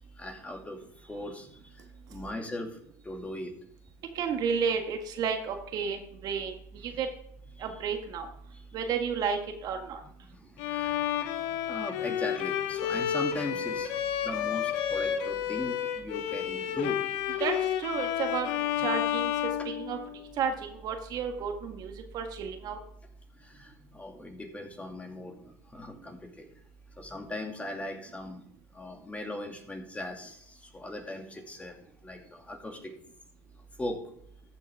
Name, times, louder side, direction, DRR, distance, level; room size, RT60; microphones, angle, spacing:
voice 1, 0.2-1.8 2.1-2.8 3.0-3.5 7.6-7.7 8.5-8.6 10.3-17.4 23.4-26.5 27.0-28.4 28.7-31.8 32.0-32.9 33.8-34.0, left 1 dB, 15° left, 2 dB, 2.4 m, -39 dB
voice 2, 4.2-7.1 7.6-8.3 8.7-10.0 17.4-19.3 19.7-20.0 20.4-22.8, right 6 dB, 60° right, 4 dB, 1.7 m, -32 dB
Bowed string instrument, 10.6-20.4, left 10 dB, 75° left, 0.9 m, -31 dB
14.0 x 7.1 x 3.6 m, 0.68 s
hypercardioid pair, 80°, 8 cm